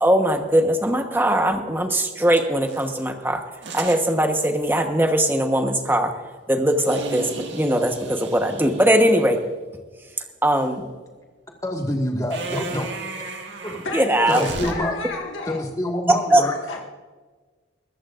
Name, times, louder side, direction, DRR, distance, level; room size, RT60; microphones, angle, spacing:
voice 1, 0.0-3.4 3.7-6.1 6.5-9.4 10.4-10.8 13.9-14.4 16.1-16.4, right 1 dB, 10° right, 5 dB, 1.1 m, -20 dB
sound 1, 2.7-2.9 3.6-4.0 6.9-9.4 12.3-14.7, right 3 dB, 65° right, 1.9 m, -35 dB
voice 2, 11.6-12.9 13.6-13.8 14.3-15.0 15.5-16.5, left 1 dB, 15° left, 1 dB, 1.8 m, -26 dB
voice 3, 13.8-15.6 16.3-16.8, left 2 dB, 85° left, 0 dB, 1.7 m, -31 dB
22.5 x 14.5 x 2.5 m, 1.4 s
head